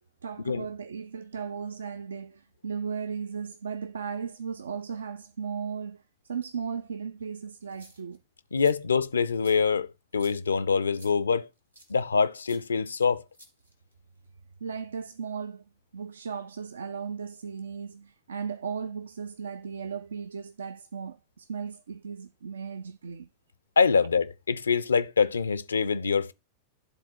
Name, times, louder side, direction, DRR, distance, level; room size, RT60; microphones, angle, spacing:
voice 1, 0.2-8.2 14.6-15.6 15.9-23.3, right 6 dB, 70° right, 0.3 m, -36 dB
sound 1, 7.6-8.2 8.6-8.7 9.4-9.6 10.1-10.4 11.0-11.1 11.7-11.9 12.4-12.6 13.3-13.9, right 1 dB, 85° right, 1.2 m, -53 dB
voice 2, 8.5-11.5 11.9-13.2 23.8-26.3, left 5 dB, 75° left, 0.4 m, -25 dB
11.0 x 3.9 x 4.4 m
figure-of-eight pair, 90°, 0 cm